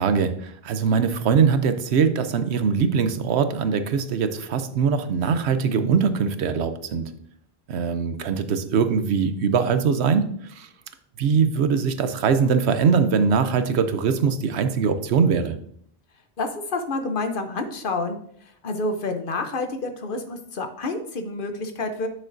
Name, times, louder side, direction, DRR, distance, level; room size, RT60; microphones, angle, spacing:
voice 1, 0.0-7.1 7.7-10.3 10.6-10.7 11.2-15.6, right 6 dB, 75° right, 10 dB, 0.9 m, -22 dB
voice 2, 16.4-22.1, left 2 dB, 55° left, 7 dB, 0.9 m, -29 dB
8.8 x 6.4 x 2.6 m, 0.65 s
omnidirectional pair, 1.1 m